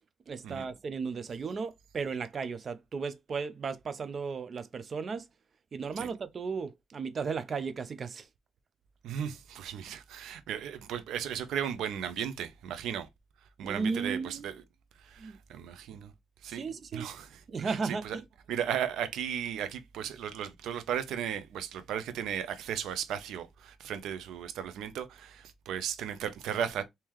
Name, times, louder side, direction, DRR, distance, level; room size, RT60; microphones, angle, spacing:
voice 1, 0.3-5.3 5.7-8.3 13.6-14.5 15.2-15.4 16.4-17.1 17.5-18.2, right 5 dB, 45° right, 0.6 m, -35 dB
voice 2, 9.0-13.1 13.6-14.6 15.0-16.1 16.4-16.6 16.9-18.2 18.5-26.8, right 9 dB, 80° right, 0.6 m, -36 dB
3.6 x 2.8 x 3.1 m
cardioid pair, 90°, 0 cm